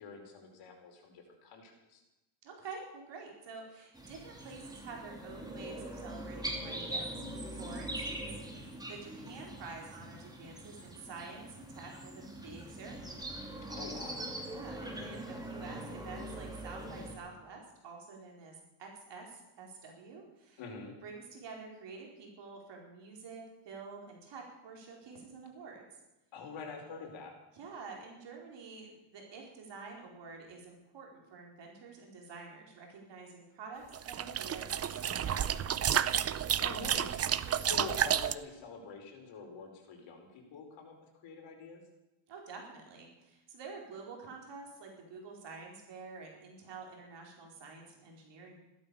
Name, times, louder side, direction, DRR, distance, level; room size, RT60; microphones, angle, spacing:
voice 1, 0.0-2.0 13.7-14.3 20.6-20.9 26.3-27.3 36.6-40.9 41.2-41.8, left 4 dB, 65° left, 2 dB, 4.9 m, -46 dB
voice 2, 2.4-7.2 7.6-13.3 14.4-20.6 21.0-25.9 27.5-36.1 42.3-48.6, right 4 dB, 55° right, 0 dB, 4.5 m, -48 dB
sound 1, 3.9-17.1, right 1 dB, 10° right, 3.0 m, -42 dB
sound 2, 33.9-38.3, right 9 dB, 30° right, 0.6 m, -31 dB
15.5 x 13.0 x 7.0 m, 0.98 s
cardioid pair, 145°, 49 cm